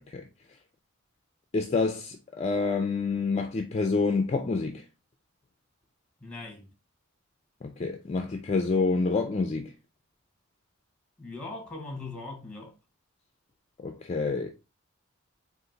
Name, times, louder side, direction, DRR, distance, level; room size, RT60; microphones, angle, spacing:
voice 1, 1.5-4.8 7.6-9.7 13.8-14.5, left 4 dB, 30° left, 0.3 m, -27 dB
voice 2, 6.2-6.7 11.2-12.7, left 3 dB, 5° left, 1.0 m, -40 dB
3.9 x 2.5 x 3.8 m
head